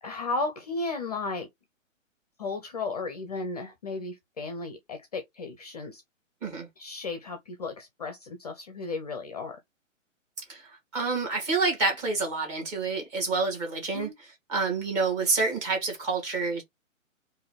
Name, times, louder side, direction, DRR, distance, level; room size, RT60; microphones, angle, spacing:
voice 1, 0.0-1.5 2.4-6.0 6.8-9.6 13.9-14.1, left 3 dB, 30° left, 0.5 m, -34 dB
voice 2, 10.9-14.1 14.5-16.6, right 3 dB, 25° right, 1.8 m, -28 dB
3.7 x 2.6 x 3.2 m
figure-of-eight pair, 130°, 40 cm